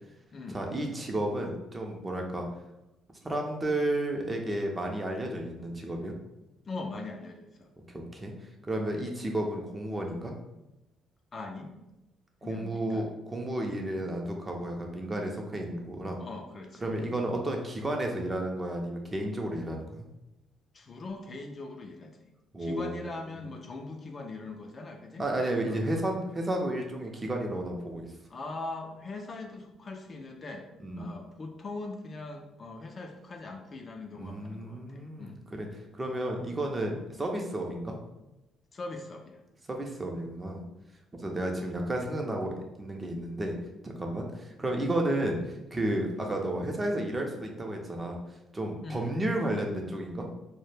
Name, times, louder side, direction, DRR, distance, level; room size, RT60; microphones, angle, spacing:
voice 1, 0.5-2.5 3.2-6.1 8.1-8.3 8.7-10.3 12.4-16.2 16.8-20.0 22.5-23.0 25.2-28.1 30.8-31.1 34.1-35.7 35.9-38.0 39.7-40.6 41.1-43.5 43.8-48.2 48.5-50.3, right 1 dB, 25° right, 2 dB, 0.5 m, -32 dB
voice 2, 6.7-7.7 11.3-11.7 12.4-13.2 16.2-16.9 20.7-22.3 22.6-25.3 25.6-26.1 28.3-30.7 31.0-35.4 38.7-39.4 48.8-49.2, left 3 dB, 40° left, 3 dB, 0.3 m, -41 dB
2.1 x 2.0 x 3.1 m, 0.95 s
cardioid pair, 80°, 0 cm